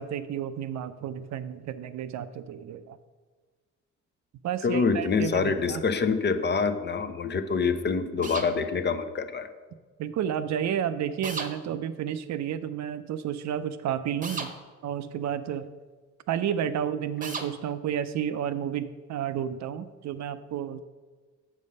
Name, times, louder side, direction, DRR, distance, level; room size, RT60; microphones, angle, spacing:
voice 1, 0.0-3.0 4.4-5.8 10.0-14.5 14.8-15.7 16.3-20.8, right 9 dB, 65° right, 12 dB, 0.5 m, -31 dB
voice 2, 4.6-9.5, left 5 dB, 35° left, 10 dB, 0.6 m, -26 dB
sound 1, 8.2-8.5 11.2-11.5 14.2-14.5 17.2-17.5, right 3 dB, 25° right, 0.9 m, -34 dB
7.6 x 5.3 x 5.4 m, 1.4 s
cardioid pair, 90°, 30 cm